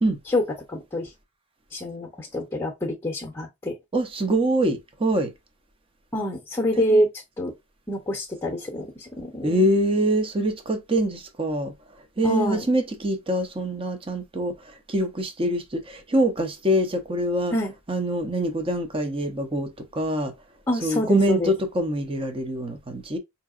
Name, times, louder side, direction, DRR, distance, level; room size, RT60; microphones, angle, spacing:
voice 1, 0.7-1.1 1.7-3.8 6.1-7.1 7.4-7.5 7.9-9.7 12.2-12.7 17.5-17.7 20.7-21.5, equal, 15° left, 0.7 m, -26 dB
voice 2, 3.9-5.3 6.9-7.0 9.4-11.7 12.2-17.5 17.9-20.3 20.8-23.2, right 1 dB, 25° right, 0.6 m, -24 dB
4.5 x 2.8 x 2.4 m
head